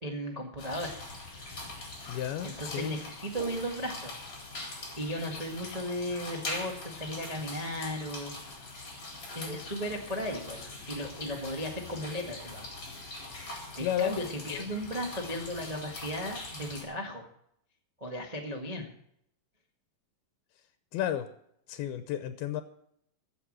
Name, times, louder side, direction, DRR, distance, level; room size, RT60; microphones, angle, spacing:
voice 1, 0.0-1.0 2.4-4.2 4.7-8.7 9.3-12.7 13.8-17.3 18.0-18.9, equal, 75° right, 1 dB, 0.3 m, -36 dB
sound 1, 0.6-16.8, left 2 dB, 30° left, 4.4 m, -42 dB
voice 2, 2.1-3.0 13.8-14.2 14.5-14.8 20.9-21.3 21.7-22.6, left 11 dB, 85° left, 10 dB, 2.8 m, -32 dB
14.5 x 7.7 x 7.5 m, 0.72 s
omnidirectional pair, 4.3 m